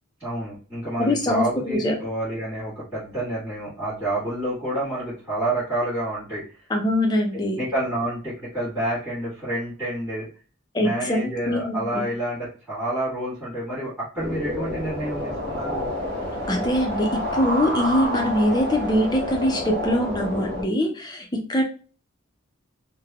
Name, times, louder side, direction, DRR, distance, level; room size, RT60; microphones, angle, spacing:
voice 1, 0.2-6.4 7.6-10.3 10.8-15.9, right 1 dB, 5° right, -15 dB, 1.5 m, -28 dB
voice 2, 1.0-1.9 6.7-7.6 10.7-12.0 16.5-21.6, left 1 dB, 20° left, 2 dB, 0.5 m, -23 dB
sound 1, 14.2-20.6, equal, 50° right, 0.9 m, -29 dB
3.3 x 2.1 x 2.3 m, 0.39 s
head